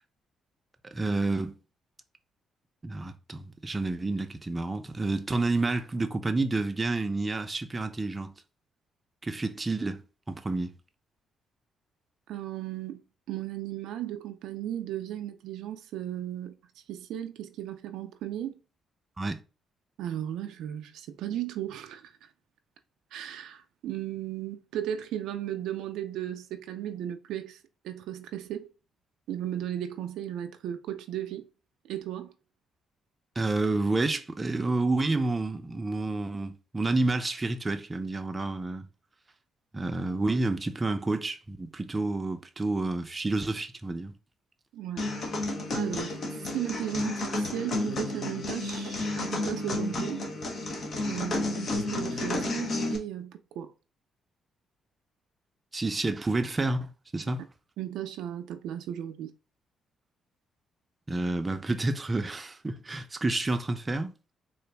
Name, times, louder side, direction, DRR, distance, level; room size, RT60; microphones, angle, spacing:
voice 1, 0.8-1.6 2.8-8.3 9.2-10.0 10.3-10.7 19.2-19.4 33.4-38.9 39.7-44.1 55.7-57.4 61.1-64.1, right 2 dB, 25° right, 0.5 m, -29 dB
voice 2, 12.3-13.0 13.3-16.6 16.9-18.6 20.0-22.1 23.1-27.6 27.8-28.7 29.3-31.4 31.9-32.3 44.7-45.1 45.7-46.2 46.5-50.2 51.1-53.7 57.8-59.3, right 11 dB, 85° right, 0.4 m, -35 dB
sound 1, 45.0-53.0, left 2 dB, 55° left, 0.9 m, -31 dB
3.8 x 2.5 x 3.3 m
cardioid pair, 90°, 0 cm